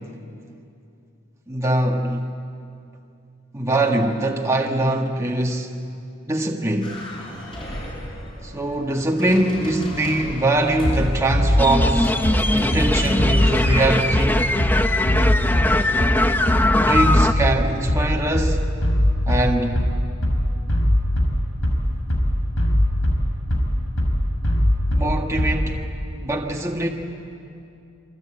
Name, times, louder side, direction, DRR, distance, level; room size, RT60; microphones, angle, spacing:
voice 1, 1.5-2.2 3.5-5.7 6.3-7.0 8.4-12.2 12.5-14.5 16.7-18.7 19.3-19.8 24.9-25.9 26.2-26.9, right 1 dB, 15° right, 0 dB, 1.6 m, -22 dB
sound 1, 6.8-17.4, left 1 dB, 25° left, 7.7 m, -37 dB
Bass drum, 10.8-25.8, equal, 75° left, 5.0 m, -21 dB
sound 2, 11.6-17.3, left 1 dB, 10° left, 0.7 m, -21 dB
27.5 x 24.5 x 8.8 m, 2.6 s
head